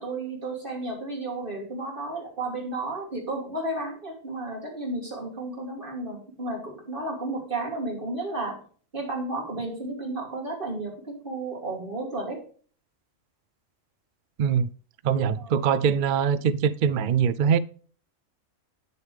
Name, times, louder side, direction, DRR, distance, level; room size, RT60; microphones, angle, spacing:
voice 1, 0.0-8.6 8.9-12.4 15.3-15.5, right 2 dB, 40° right, 3.1 m, -33 dB
voice 2, 14.4-14.7 15.0-17.6, right 7 dB, 70° right, 0.4 m, -23 dB
9.5 x 6.8 x 3.4 m
omnidirectional pair, 1.4 m